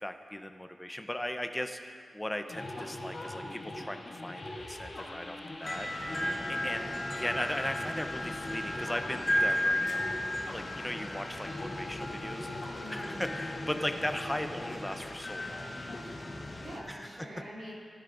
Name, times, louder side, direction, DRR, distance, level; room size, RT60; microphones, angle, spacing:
voice 1, 0.0-6.2 6.5-6.9 7.1-10.1 10.5-12.5 12.9-15.7 16.9-17.3, left 1 dB, 10° left, 7 dB, 0.6 m, -37 dB
sound 1, 2.5-16.0, left 1 dB, 55° left, 1.9 m, -42 dB
sound 2, 5.6-16.8, left 1 dB, 35° left, 1.2 m, -35 dB
voice 2, 6.6-7.1 12.8-13.3 16.4-17.7, equal, 80° right, -6 dB, 3.1 m, -45 dB
16.5 x 10.5 x 2.6 m, 2.2 s
wide cardioid pair, 95°, 0 cm